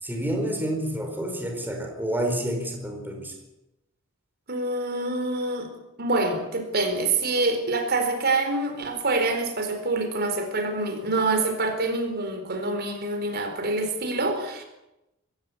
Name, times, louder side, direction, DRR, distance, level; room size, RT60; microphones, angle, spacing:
voice 1, 0.0-3.3, right 1 dB, 10° right, 3 dB, 4.7 m, -29 dB
voice 2, 4.5-5.7 6.0-14.6, right 2 dB, 50° right, 6 dB, 4.2 m, -26 dB
23.0 x 15.5 x 8.4 m, 0.92 s
head